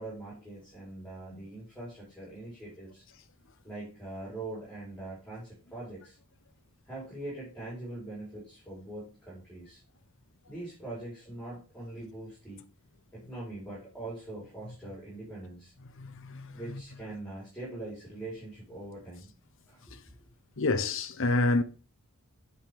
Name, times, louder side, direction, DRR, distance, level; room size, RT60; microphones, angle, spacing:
voice 1, 0.0-3.0 3.6-6.2 6.9-9.8 10.5-12.6 13.1-15.7 16.5-19.3 19.7-19.8, right 2 dB, 5° left, 4.6 m, -42 dB
voice 2, 16.0-16.6 19.9-20.0 20.6-21.6, left 2 dB, 65° left, 0.9 m, -28 dB
9.2 x 5.4 x 3.6 m
head